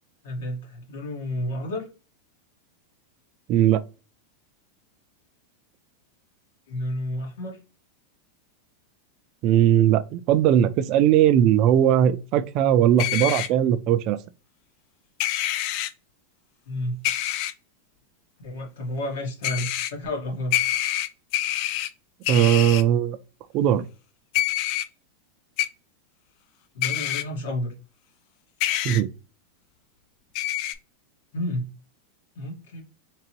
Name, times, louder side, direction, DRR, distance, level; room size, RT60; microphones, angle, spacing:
voice 1, 0.2-1.9 6.7-7.6 16.7-17.0 18.4-20.6 26.7-27.7 31.3-31.7 32.3-32.8, left 1 dB, 80° left, 1.6 m, -31 dB
voice 2, 3.5-3.8 9.4-14.2 22.3-23.2 23.5-23.8 28.8-29.1, right 11 dB, 40° right, 0.3 m, -19 dB
sound 1, 13.0-13.5 15.2-15.9 17.0-17.5 19.4-19.9 20.5-21.9 22.2-22.8 24.3-24.8 25.6-25.7 26.8-27.2 28.6-29.0 30.4-30.8, left 14 dB, 45° left, 0.3 m, -26 dB
3.8 x 3.0 x 2.9 m
supercardioid pair, 150°, 0 cm